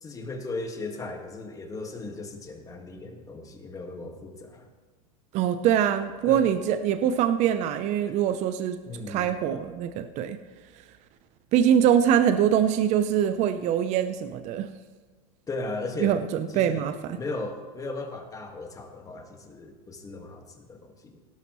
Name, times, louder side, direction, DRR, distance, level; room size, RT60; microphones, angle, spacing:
voice 1, 0.0-4.7 6.2-6.5 8.1-8.2 8.9-9.3 15.5-16.9 17.1-21.2, left 2 dB, 15° left, 4 dB, 1.7 m, -37 dB
voice 2, 5.3-8.8 9.1-10.4 11.5-14.7 16.0-16.9, right 9 dB, 40° right, 10 dB, 0.6 m, -23 dB
17.0 x 12.0 x 3.1 m, 1.4 s
hypercardioid pair, 120°, 19 cm